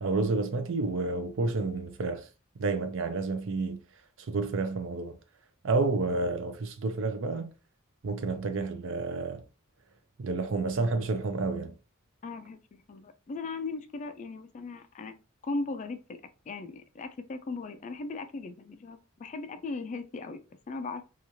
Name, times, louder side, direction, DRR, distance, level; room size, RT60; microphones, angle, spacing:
voice 1, 0.0-2.2 2.6-3.8 4.3-5.2 5.6-7.5 8.0-9.4 10.2-11.7, right 3 dB, 60° right, 0.5 m, -30 dB
voice 2, 12.2-15.1 15.4-16.2 16.5-20.4 20.7-21.0, left 3 dB, 35° left, 0.3 m, -38 dB
3.0 x 2.4 x 2.6 m
head